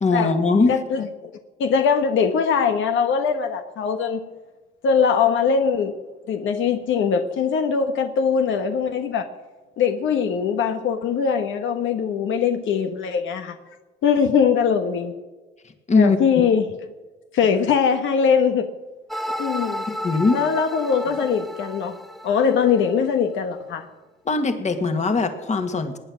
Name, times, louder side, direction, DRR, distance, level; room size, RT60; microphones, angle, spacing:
voice 1, 0.0-0.7 15.9-16.4 19.9-20.4 24.3-26.0, left 3 dB, 35° left, 7 dB, 2.0 m, -20 dB
voice 2, 0.7-1.3 1.6-4.2 4.8-6.0 6.3-9.3 9.8-13.5 14.0-15.1 15.9-16.7 17.3-18.7 19.4-19.8 20.3-21.9 22.2-23.8, left 6 dB, 80° left, 6 dB, 1.2 m, -21 dB
sound 1, 19.1-23.1, equal, ahead, 0.7 m, -32 dB
19.5 x 9.2 x 6.3 m, 1.2 s
cardioid pair, 90°, 20 cm